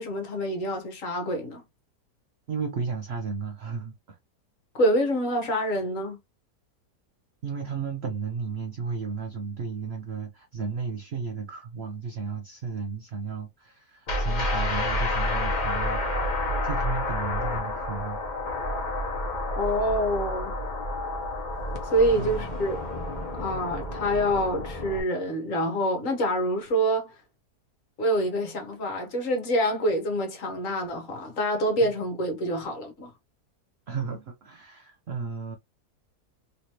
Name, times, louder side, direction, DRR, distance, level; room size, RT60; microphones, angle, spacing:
voice 1, 0.0-1.6 4.7-6.2 19.6-20.6 21.8-22.8 23.4-27.1 28.0-33.1, equal, 55° left, 1.3 m, -26 dB
voice 2, 2.5-4.2 7.4-18.2 22.1-22.4 31.8-31.9 33.9-35.6, right 5 dB, 65° right, 0.6 m, -34 dB
sound 1, 14.1-25.0, left 1 dB, 40° left, 0.7 m, -29 dB
3.2 x 3.1 x 2.8 m
omnidirectional pair, 1.8 m